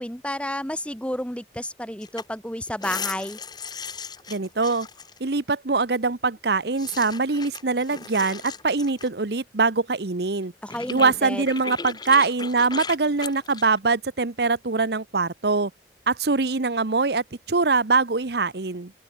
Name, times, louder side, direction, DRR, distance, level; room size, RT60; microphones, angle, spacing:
voice 1, 0.0-3.4 10.6-11.4, left 1 dB, 5° left, 2.3 m, -31 dB
sound 1, 2.0-2.3 2.6-5.2 6.8-9.1 10.4-10.5 10.7-13.8, left 5 dB, 25° left, 2.0 m, -36 dB
voice 2, 4.3-4.9 5.2-10.5 10.9-15.7 16.1-18.9, right 4 dB, 65° right, 1.0 m, -23 dB
open air
head